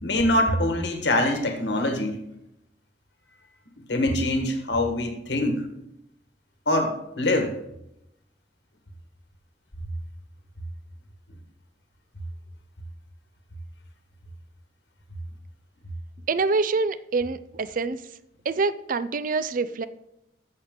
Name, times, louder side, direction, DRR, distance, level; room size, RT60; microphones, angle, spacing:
voice 1, 0.0-2.2 3.9-5.6 6.7-7.5, left 1 dB, 70° left, 4 dB, 1.5 m, -24 dB
voice 2, 16.3-18.0 18.5-19.9, right 4 dB, 50° right, 15 dB, 0.5 m, -25 dB
15.0 x 6.4 x 3.8 m, 0.84 s
head